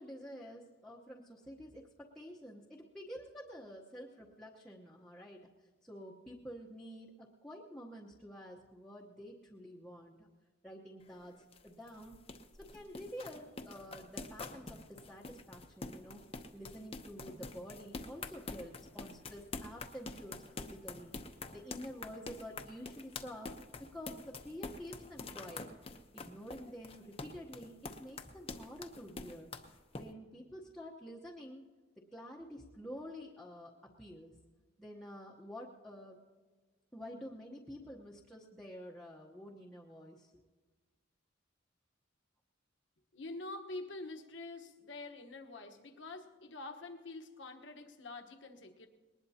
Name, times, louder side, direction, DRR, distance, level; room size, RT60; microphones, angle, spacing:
voice 1, 0.0-10.3 10.6-12.2 12.6-16.2 16.5-21.2 21.5-23.5 23.8-25.7 26.1-29.5 30.0-31.6 32.0-34.4 34.8-36.2 36.9-40.3, equal, 5° left, -5 dB, 1.0 m, -49 dB
sound 1, 11.0-30.0, left 3 dB, 30° left, 0.8 m, -46 dB
voice 2, 43.1-48.9, left 2 dB, 70° left, 4 dB, 1.2 m, -46 dB
20.5 x 19.0 x 2.8 m, 1.4 s
head